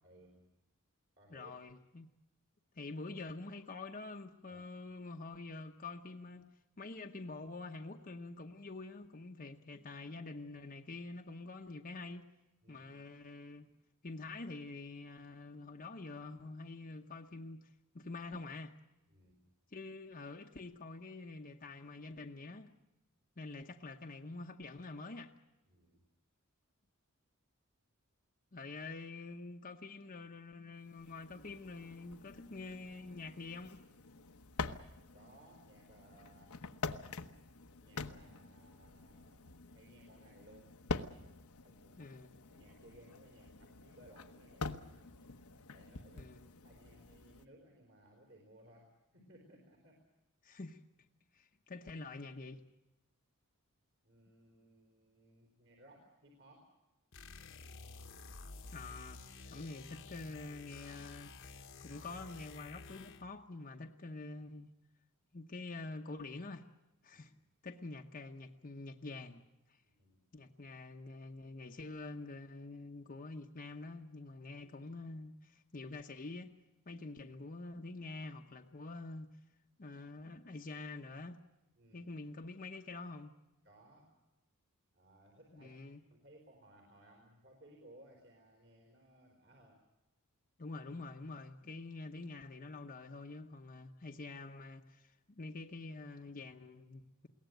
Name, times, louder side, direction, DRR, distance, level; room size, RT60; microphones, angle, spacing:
voice 1, 0.0-0.5 1.2-1.5 4.4-4.6 12.6-12.9 19.1-19.4 25.7-26.1 35.1-36.6 37.7-40.7 41.6-42.2 42.5-45.1 45.7-46.3 46.6-50.0 54.0-56.7 67.1-67.2 69.8-70.2 81.8-82.1 83.6-84.2 84.9-85.8 86.1-89.8, right 1 dB, 55° right, 4.2 m, -62 dB
voice 2, 1.3-2.1 2.7-6.5 6.8-12.3 12.7-13.7 14.0-18.7 19.7-22.7 23.4-25.3 28.5-33.8 42.0-42.3 46.1-46.5 50.4-50.8 51.3-52.6 58.7-59.2 59.4-64.7 65.3-66.7 67.0-67.3 67.6-69.4 69.7-69.8 70.3-76.5 76.9-79.3 79.8-81.4 81.9-83.3 85.5-86.0 90.6-97.3, left 3 dB, 40° left, 0.9 m, -47 dB
sound 1, 30.9-47.4, left 4 dB, 85° left, 1.1 m, -46 dB
sound 2, 57.1-63.4, left 3 dB, 60° left, 1.2 m, -52 dB
22.0 x 17.5 x 9.2 m
head